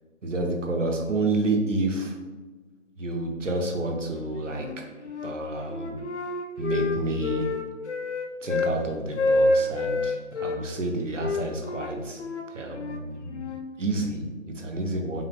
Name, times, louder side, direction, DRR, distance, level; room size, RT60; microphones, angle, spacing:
voice 1, 0.2-2.2 3.0-4.8 5.2-5.9 6.6-7.5 8.4-12.2 12.5-13.5 13.8-15.2, right 2 dB, 65° right, 3 dB, 0.8 m, -29 dB
Wind instrument woodwind instrument, 4.5-5.3 5.7-8.8 9.1-10.6 11.2-13.7, left 2 dB, 55° left, 0.5 m, -28 dB
5.5 x 2.2 x 3.4 m, 1.3 s
figure-of-eight pair, 155°, 40 cm